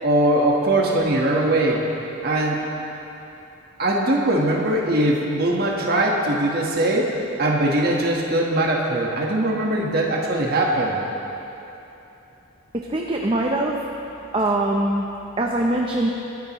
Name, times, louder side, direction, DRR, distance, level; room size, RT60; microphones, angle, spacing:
voice 1, 0.0-1.8 2.2-2.6 3.8-7.1 7.4-11.0, right 1 dB, 45° right, -2 dB, 1.4 m, -21 dB
voice 2, 12.7-13.8 14.3-15.0 15.4-16.1, right 1 dB, 25° right, 0 dB, 0.7 m, -22 dB
23.0 x 10.0 x 3.1 m, 3.0 s
head